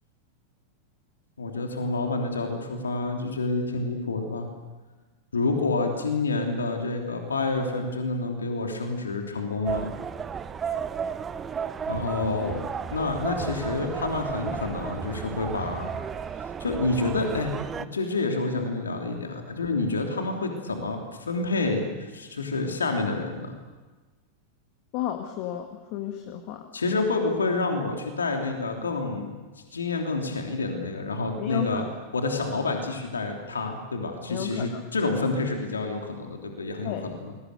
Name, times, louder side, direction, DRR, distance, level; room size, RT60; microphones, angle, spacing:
voice 1, 1.4-4.5 5.3-10.0 11.9-12.6 12.9-15.9 16.6-23.5 26.7-29.3 29.7-31.8 32.1-37.3, left 3 dB, 75° left, 3 dB, 3.2 m, -28 dB
sound 1, 9.7-17.9, right 7 dB, 20° right, 1.0 m, -33 dB
voice 2, 24.9-26.6 31.4-31.9 34.3-34.8 36.8-37.1, left 11 dB, 45° left, 6 dB, 1.9 m, -32 dB
28.5 x 22.0 x 6.8 m, 1.3 s
figure-of-eight pair, 90°, 0 cm